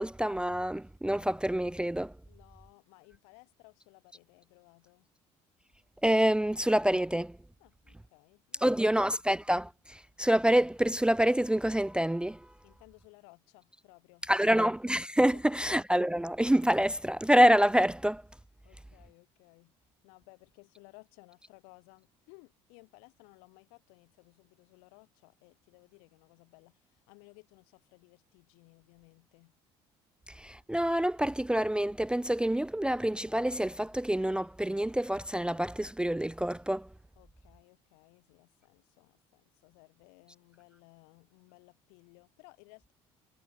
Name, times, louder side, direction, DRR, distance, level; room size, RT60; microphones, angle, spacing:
voice 1, 0.0-2.1 6.0-7.4 8.6-12.5 14.3-18.2 30.3-36.9, right 1 dB, 5° right, 0.5 m, -27 dB
voice 2, 2.3-5.1 7.6-9.0 12.6-14.7 15.3-15.8 18.6-29.5 37.2-42.9, left 40 dB or more, 80° left, 4.2 m, -59 dB
hypercardioid pair, 70°, 15 cm